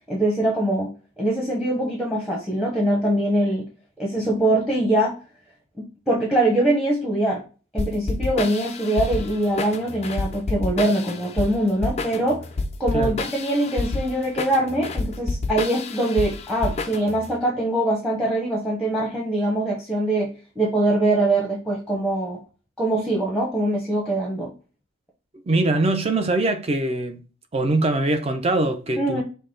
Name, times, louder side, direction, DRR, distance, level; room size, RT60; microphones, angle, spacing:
voice 1, 0.1-0.9 1.2-3.7 4.0-5.1 5.8-7.4 7.7-12.4 12.8-22.4 22.8-24.5 29.0-29.2, right 1 dB, ahead, 0.9 m, -23 dB
sound 1, 7.8-17.3, left 3 dB, 30° left, 0.4 m, -29 dB
voice 2, 25.5-27.2 27.5-29.2, right 2 dB, 30° right, 0.5 m, -22 dB
5.5 x 2.1 x 3.8 m
head